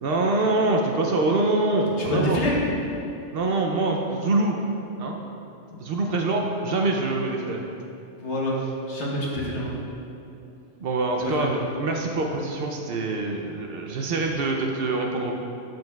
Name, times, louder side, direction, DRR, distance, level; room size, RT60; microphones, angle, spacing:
voice 1, 0.0-2.5 3.3-4.6 5.0-5.2 5.8-7.6 10.8-15.3, right 2 dB, 60° right, 1 dB, 0.7 m, -24 dB
voice 2, 2.0-2.6 8.2-8.6 8.9-9.7 11.2-11.5, left 1 dB, 70° left, -4 dB, 1.4 m, -26 dB
7.7 x 7.4 x 2.3 m, 2.7 s
omnidirectional pair, 1.2 m